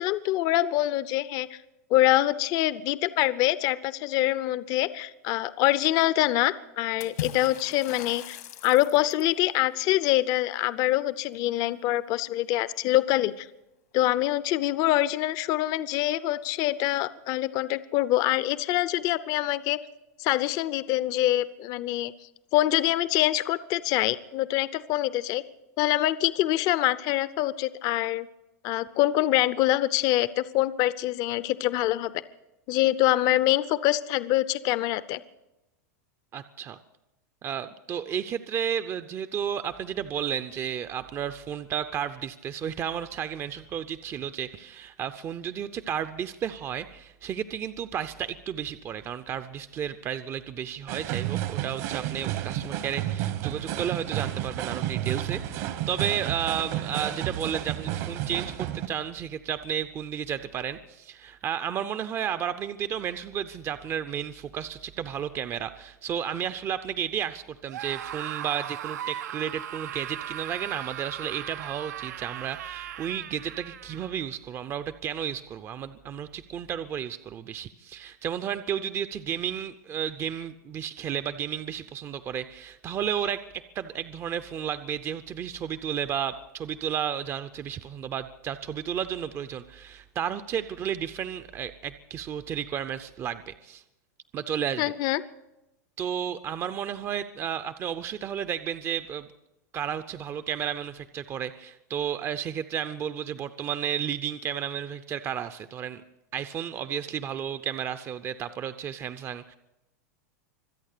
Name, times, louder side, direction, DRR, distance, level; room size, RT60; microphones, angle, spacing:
voice 1, 0.0-1.6 1.9-13.5 13.9-19.8 20.2-22.1 22.5-25.4 25.8-28.3 28.6-32.1 32.7-35.2 94.8-95.2, left 15 dB, 45° left, 16 dB, 0.6 m, -25 dB
Water / Splash splatter, 7.0-9.4, left 11 dB, 80° left, 1.9 m, -38 dB
voice 2, 36.3-36.8 37.4-93.8 94.3-94.9 96.0-99.3 99.7-106.0 106.3-109.6, right 9 dB, 30° right, 11 dB, 0.6 m, -32 dB
sound 1, 50.9-58.9, right 12 dB, 60° right, 1.4 m, -31 dB
Screaming, 67.7-74.2, right 11 dB, 80° right, 0.7 m, -38 dB
25.0 x 8.6 x 6.7 m, 0.94 s
hypercardioid pair, 125°, 9 cm